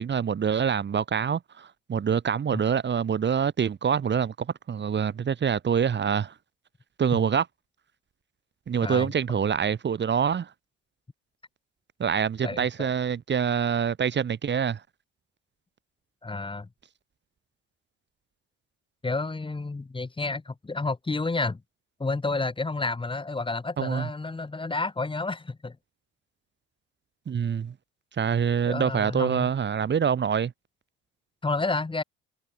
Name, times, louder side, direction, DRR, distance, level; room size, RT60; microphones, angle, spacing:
voice 1, 0.0-6.3 7.0-7.5 8.7-10.5 12.0-14.8 23.8-24.1 27.3-27.7 28.2-30.5, right 7 dB, 35° right, 3.7 m, -25 dB
voice 2, 12.4-12.9 16.2-16.7 19.0-21.6 22.0-25.8 28.7-29.5 31.4-32.0, left 3 dB, 15° left, 3.7 m, -30 dB
supercardioid pair, 90°, 31 cm